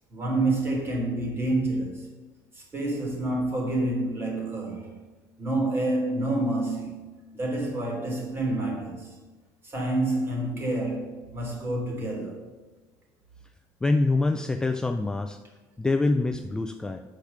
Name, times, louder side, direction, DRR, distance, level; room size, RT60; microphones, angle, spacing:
voice 1, 0.1-2.1 2.5-5.0 5.4-7.0 7.3-9.2 9.6-12.4, right 2 dB, 30° right, 3.3 m, -28 dB
voice 2, 13.8-15.4 15.8-17.0, left 2 dB, 10° left, 0.4 m, -25 dB
8.5 x 6.6 x 6.6 m
cardioid pair, 135°, 8 cm